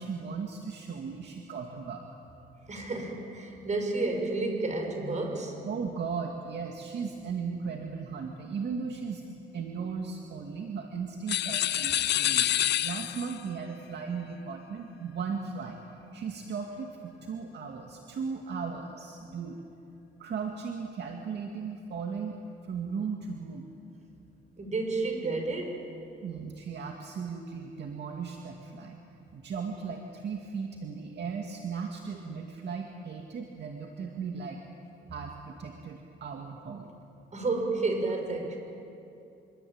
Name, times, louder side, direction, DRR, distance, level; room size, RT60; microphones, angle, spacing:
voice 1, 0.0-2.0 5.6-9.2 9.5-12.5 12.8-15.8 16.1-19.6 20.2-22.4 22.6-23.7 26.2-29.0 29.3-34.6 35.1-36.9, right 5 dB, 60° right, 2 dB, 2.3 m, -36 dB
voice 2, 2.7-5.6 24.6-25.8 37.3-38.6, right 3 dB, 35° right, 3 dB, 6.4 m, -31 dB
sound 1, 11.3-13.4, left 12 dB, 60° left, 0.5 m, -27 dB
26.0 x 24.5 x 8.9 m, 2.7 s
cardioid pair, 90°, 20 cm